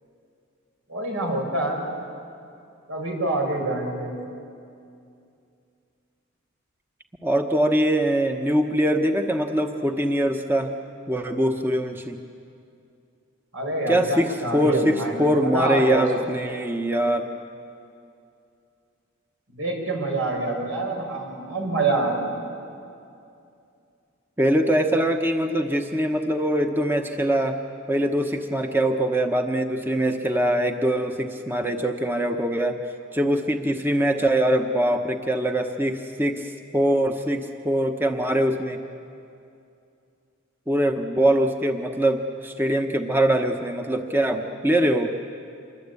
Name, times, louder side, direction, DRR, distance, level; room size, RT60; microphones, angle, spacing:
voice 1, 0.9-1.8 2.9-4.1 13.5-16.0 19.5-22.3, right 2 dB, 80° right, 1 dB, 6.4 m, -26 dB
voice 2, 7.2-10.7 11.1-12.2 13.9-17.3 24.4-27.6 27.9-32.8 33.1-38.8 40.7-45.1, right 1 dB, 10° right, 4 dB, 1.0 m, -23 dB
27.0 x 23.0 x 8.4 m, 2.5 s
head